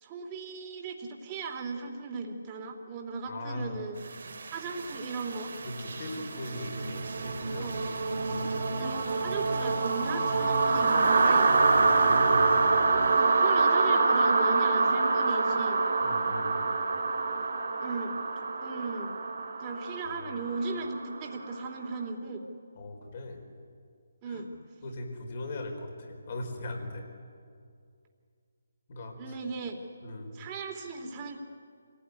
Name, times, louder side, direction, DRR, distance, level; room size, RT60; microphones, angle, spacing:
voice 1, 0.0-4.0 4.5-5.5 7.6-7.8 8.7-11.5 12.5-12.7 13.2-15.8 17.8-18.2 18.6-19.2 19.6-22.4 24.2-24.5 29.2-29.8 30.3-31.4, right 3 dB, 25° right, 2 dB, 3.0 m, -37 dB
voice 2, 3.3-3.8 5.6-7.7 8.2-8.5 11.7-12.6 16.0-16.7 20.1-20.4 22.8-23.4 24.2-24.4 24.8-27.0 28.9-29.4 30.0-30.3, left 1 dB, 45° left, 3 dB, 4.7 m, -39 dB
sound 1, 4.1-21.9, right 3 dB, 60° right, 2.9 m, -27 dB
26.0 x 17.5 x 9.7 m, 2.3 s
figure-of-eight pair, 155°, 0 cm